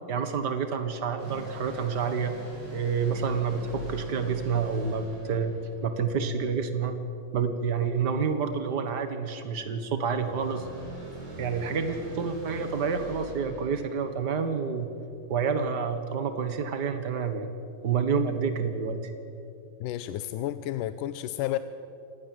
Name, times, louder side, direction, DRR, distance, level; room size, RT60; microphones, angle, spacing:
voice 1, 0.1-2.3 2.7-5.5 5.8-7.0 7.3-10.7 11.4-14.9 15.3-17.5 17.8-19.1, right 5 dB, 80° right, 8 dB, 0.9 m, -28 dB
sound 1, 1.2-6.7 10.2-14.9, right 2 dB, 65° right, 9.5 m, -42 dB
voice 2, 19.8-21.6, left 13 dB, 75° left, 12 dB, 2.1 m, -31 dB
28.0 x 19.5 x 7.7 m, 2.6 s
omnidirectional pair, 4.1 m